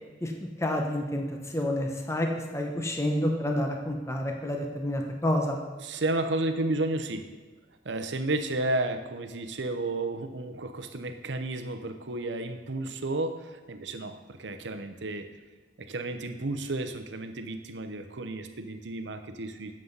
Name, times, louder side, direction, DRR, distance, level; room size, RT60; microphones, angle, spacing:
voice 1, 0.2-1.2 1.5-5.6, left 1 dB, 15° left, 2 dB, 0.8 m, -29 dB
voice 2, 5.8-7.3 7.8-15.3 15.8-19.7, right 2 dB, 75° right, 8 dB, 0.8 m, -32 dB
11.0 x 7.6 x 4.0 m, 1.3 s
head